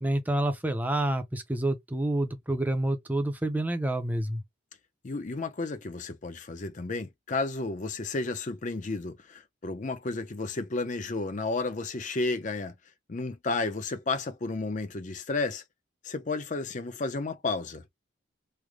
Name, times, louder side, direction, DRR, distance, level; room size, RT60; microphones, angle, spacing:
voice 1, 0.0-4.4, right 1 dB, 10° right, 0.5 m, -28 dB
voice 2, 5.0-12.7 13.1-15.6 16.0-17.8, left 3 dB, 40° left, 0.5 m, -32 dB
3.3 x 2.1 x 3.5 m
head